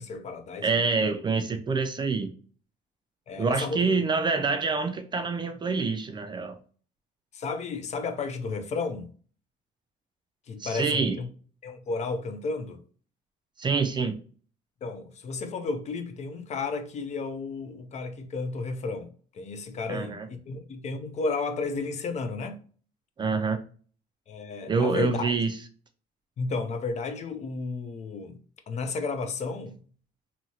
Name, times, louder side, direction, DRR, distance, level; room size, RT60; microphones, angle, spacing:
voice 1, 0.0-0.8 3.3-3.9 7.3-9.1 10.5-11.3 11.6-12.8 14.8-22.6 24.3-25.3 26.4-28.4 28.7-29.8, left 4 dB, 40° left, 0.5 m, -33 dB
voice 2, 0.6-2.3 3.4-6.6 10.6-11.2 13.6-14.1 19.9-20.3 23.2-23.6 24.7-25.5, right 4 dB, 25° right, 0.3 m, -26 dB
2.7 x 2.7 x 2.8 m
cardioid pair, 110°, 17 cm